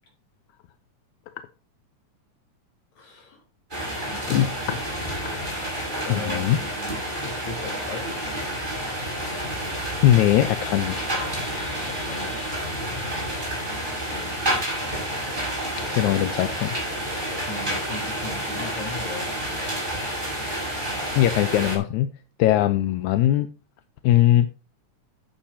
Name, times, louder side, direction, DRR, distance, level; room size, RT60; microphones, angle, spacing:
voice 1, 3.0-3.4 4.0-4.8 6.0-8.5 11.9-13.0 14.0-14.4 17.3-19.3, left 2 dB, 65° left, 5.5 m, -38 dB
sound 1, 3.7-21.8, right 1 dB, 15° right, 6.1 m, -29 dB
voice 2, 6.1-6.6 10.0-11.2 16.0-16.7 21.2-22.1 22.4-23.5 24.0-24.5, left 13 dB, 90° left, 2.2 m, -20 dB
14.5 x 8.8 x 2.8 m
omnidirectional pair, 3.3 m